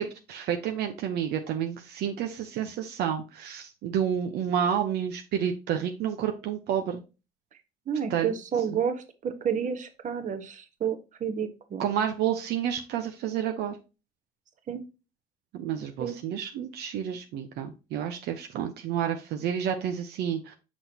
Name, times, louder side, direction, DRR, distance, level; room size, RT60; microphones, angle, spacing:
voice 1, 0.0-7.0 8.1-8.3 11.8-13.8 15.5-20.5, right 9 dB, 75° right, 5 dB, 0.9 m, -30 dB
voice 2, 7.9-11.9 14.7-14.8 16.0-16.2, right 7 dB, 50° right, 8 dB, 1.3 m, -30 dB
6.2 x 6.1 x 2.9 m, 0.30 s
cardioid pair, 110°, 17 cm